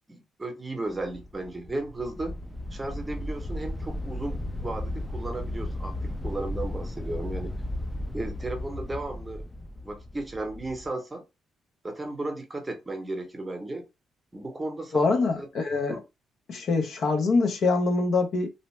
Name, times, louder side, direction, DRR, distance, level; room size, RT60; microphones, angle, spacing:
voice 1, 0.1-2.4 2.7-7.5 8.1-9.5 9.8-11.2 11.8-13.9 14.3-15.5 15.9-16.0, right 2 dB, 20° right, 0.8 m, -35 dB
sound 1, 0.9-10.9, left 1 dB, 15° left, 0.4 m, -35 dB
voice 2, 14.9-16.0 16.5-18.5, left 3 dB, 65° left, 0.7 m, -24 dB
2.7 x 2.0 x 3.1 m
cardioid pair, 90°, 0 cm